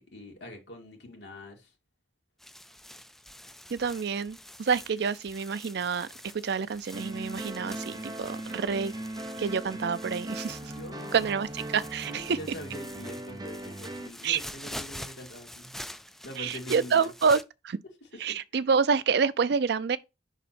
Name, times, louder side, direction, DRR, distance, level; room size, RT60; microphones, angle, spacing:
voice 1, 0.0-1.7 10.7-11.2 12.1-15.7 16.2-17.1 18.1-18.4, left 1 dB, 70° left, 2.1 m, -44 dB
sound 1, 2.4-17.4, left 1 dB, ahead, 0.3 m, -46 dB
voice 2, 3.7-6.1 6.3-8.9 9.4-10.7 11.1-12.4 14.2-14.4 16.4-17.4 17.6-17.8 18.2-20.0, right 5 dB, 65° right, 0.4 m, -27 dB
sound 2, 6.9-14.1, right 1 dB, 20° right, 0.9 m, -39 dB
5.5 x 4.0 x 4.2 m
head